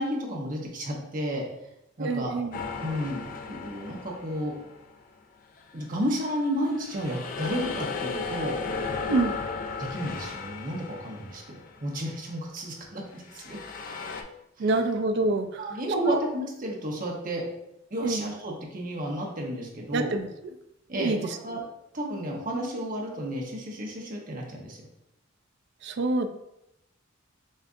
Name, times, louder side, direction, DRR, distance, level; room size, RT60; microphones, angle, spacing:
voice 1, 0.0-1.4 2.0-2.3 2.8-4.5 5.7-8.5 9.8-11.4 11.8-13.6 14.6-14.7 15.6-17.4 17.9-20.1 20.9-21.1 21.4-21.6 21.9-24.8, equal, 45° right, -1 dB, 0.9 m, -32 dB
voice 2, 2.0-2.6 9.1-9.3 14.6-15.6 16.0-16.2 18.0-18.3 19.9-20.3 20.9-21.4 25.8-26.3, right 2 dB, 60° right, 8 dB, 0.4 m, -26 dB
sound 1, 2.5-5.0 5.6-12.0 13.2-14.2, left 4 dB, 45° left, 0.4 m, -36 dB
6.3 x 2.5 x 2.5 m, 0.86 s
head